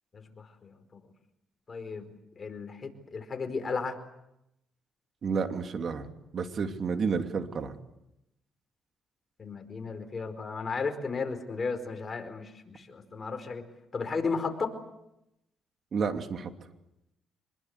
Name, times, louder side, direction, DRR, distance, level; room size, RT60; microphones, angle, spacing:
voice 1, 0.1-1.1 1.7-2.1 2.4-4.0 9.4-13.6 13.9-14.7, left 4 dB, 35° left, 7 dB, 4.8 m, -34 dB
voice 2, 5.2-6.1 6.3-7.7 15.9-16.5, right 5 dB, 50° right, 6 dB, 2.8 m, -30 dB
26.0 x 22.5 x 8.3 m, 0.86 s
cardioid pair, 90°, 0 cm